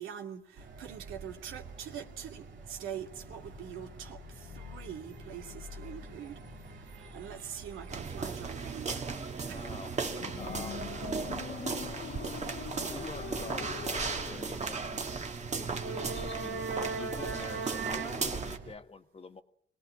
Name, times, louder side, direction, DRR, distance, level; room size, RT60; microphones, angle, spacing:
voice 1, 0.0-6.4 7.1-9.1 9.5-9.7, right 9 dB, 85° right, 2.5 m, -43 dB
sound 1, 0.6-18.8, right 4 dB, 65° right, 2.5 m, -44 dB
sound 2, 1.5-14.6, left 9 dB, 60° left, 0.9 m, -47 dB
sound 3, 7.9-18.6, right 4 dB, 35° right, 1.7 m, -36 dB
voice 2, 9.5-11.0 12.9-15.2 15.6-19.4, left 4 dB, 30° left, 1.6 m, -46 dB
23.0 x 18.0 x 9.8 m
cardioid pair, 90°, 20 cm